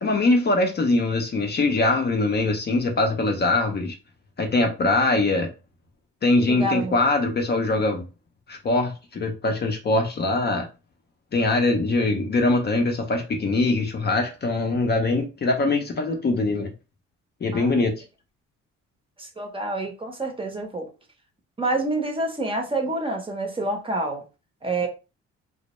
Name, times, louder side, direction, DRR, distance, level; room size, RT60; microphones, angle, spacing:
voice 1, 0.0-3.9 4.4-5.5 6.2-8.1 8.5-10.7 11.3-16.7 17.4-17.9, left 2 dB, 35° left, 0.5 m, -22 dB
voice 2, 6.5-7.0 17.5-17.9 19.2-20.9 21.6-24.2 24.6-24.9, right 2 dB, 20° right, 0.6 m, -27 dB
2.1 x 2.0 x 2.9 m
cardioid pair, 80°, 30 cm